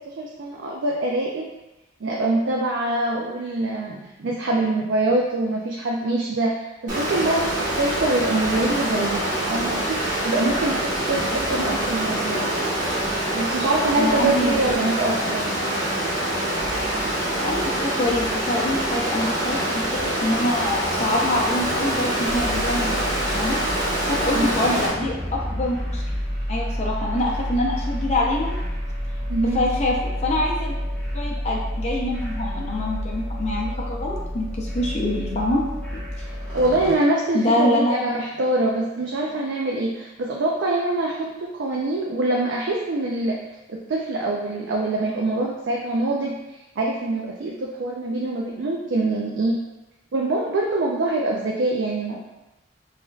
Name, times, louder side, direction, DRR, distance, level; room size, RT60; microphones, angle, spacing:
voice 1, 0.1-1.5 2.0-12.5 13.3-15.7 24.3-24.9 29.3-29.6 36.2-43.4 43.7-46.3 46.8-49.6 50.1-52.2, right 2 dB, 70° right, -2 dB, 0.4 m, -24 dB
Water, 6.9-24.9, right 1 dB, 45° right, 1.1 m, -25 dB
voice 2, 11.3-11.6 14.0-14.7 17.4-23.6 24.0-26.0 26.5-28.5 29.4-30.7 31.1-35.7 35.9-36.0 37.3-37.9, left 1 dB, 35° left, -2 dB, 0.6 m, -25 dB
sound 1, 22.2-37.0, equal, 5° left, 1.1 m, -29 dB
4.9 x 2.5 x 2.4 m, 1.0 s
head